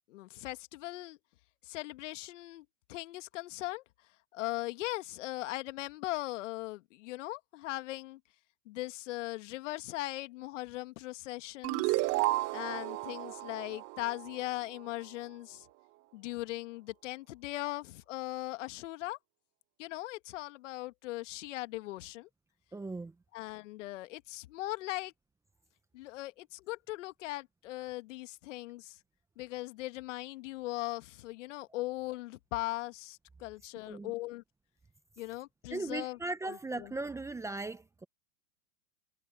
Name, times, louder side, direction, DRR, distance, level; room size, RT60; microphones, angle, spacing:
voice 1, 0.1-1.2 1.6-3.8 4.3-8.2 8.7-12.0 12.5-15.7 16.1-19.2 19.8-22.3 23.3-25.1 25.9-29.0 29.4-34.4 35.2-36.2 36.5-36.9, left 18 dB, 55° left, 2.1 m, -39 dB
sound 1, 11.6-14.9, right 20 dB, 35° right, 1.3 m, -33 dB
voice 2, 22.7-23.1 33.8-34.1 35.7-38.0, right 2 dB, 5° right, 1.0 m, -38 dB
hypercardioid pair, 125°, 43 cm